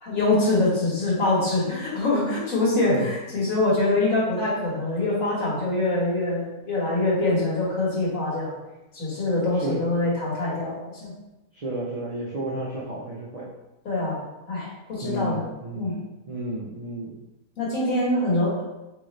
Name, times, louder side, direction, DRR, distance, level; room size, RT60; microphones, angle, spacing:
voice 1, 0.0-8.5 8.9-11.1 13.9-14.2 14.5-15.4 15.7-16.0 17.6-18.6, left 2 dB, 65° left, -6 dB, 1.8 m, -24 dB
voice 2, 11.5-13.4 15.0-15.9 16.3-17.2, right 2 dB, 80° right, -5 dB, 0.3 m, -32 dB
3.7 x 3.4 x 3.2 m, 1.0 s
omnidirectional pair, 1.6 m